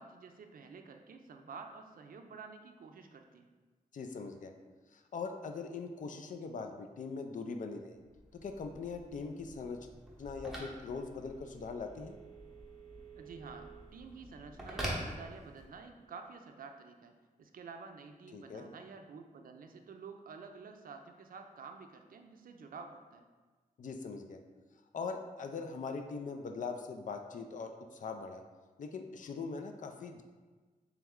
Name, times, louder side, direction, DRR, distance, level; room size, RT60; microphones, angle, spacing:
voice 1, 0.0-3.5 13.2-17.1 17.4-23.3, right 5 dB, 75° right, 5 dB, 0.4 m, -50 dB
voice 2, 3.9-4.5 4.9-8.0 8.3-9.9 10.2-12.2 18.3-18.7 23.8-24.4 24.9-28.4 28.8-30.2, left 4 dB, 65° left, 6 dB, 0.4 m, -41 dB
Telephone, 8.1-15.9, right 1 dB, 5° right, 0.7 m, -45 dB
3.4 x 3.1 x 3.6 m, 1.3 s
wide cardioid pair, 135°, 15 cm